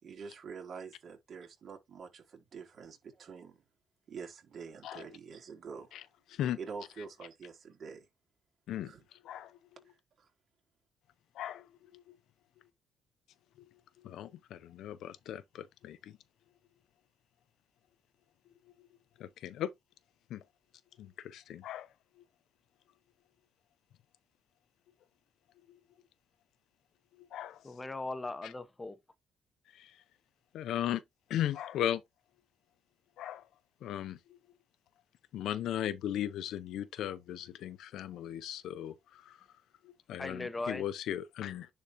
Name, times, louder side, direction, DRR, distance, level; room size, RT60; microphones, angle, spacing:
voice 1, 0.0-3.6 4.1-6.0 6.6-8.1 8.8-9.0 10.2-10.3, right 5 dB, 55° right, 3.9 m, -46 dB
voice 2, 14.0-16.1 19.2-19.7 20.3-20.4 21.0-21.9 27.3-27.6 29.8-29.9 30.5-31.0 31.3-32.0 33.2-33.4 33.8-34.2 35.3-39.4 40.1-41.7, left 11 dB, 80° left, 0.7 m, -37 dB
voice 3, 27.6-29.0 40.2-40.8, left 2 dB, 20° left, 0.9 m, -38 dB
10.5 x 4.0 x 3.0 m
cardioid pair, 90°, 0 cm